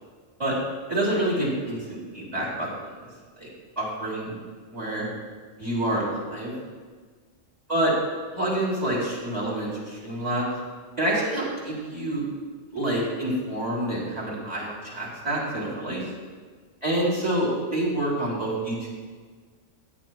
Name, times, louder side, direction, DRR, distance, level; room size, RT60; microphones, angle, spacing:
voice 1, 0.9-2.7 3.0-3.1 3.4-3.5 3.8-4.4 4.7-5.1 5.6-6.5 7.7-7.9 8.4-10.5 11.0-12.2 12.7-16.0 16.8-18.9, right 1 dB, 30° right, -6 dB, 3.7 m, -27 dB
18.5 x 9.0 x 2.4 m, 1.5 s
omnidirectional pair, 1.3 m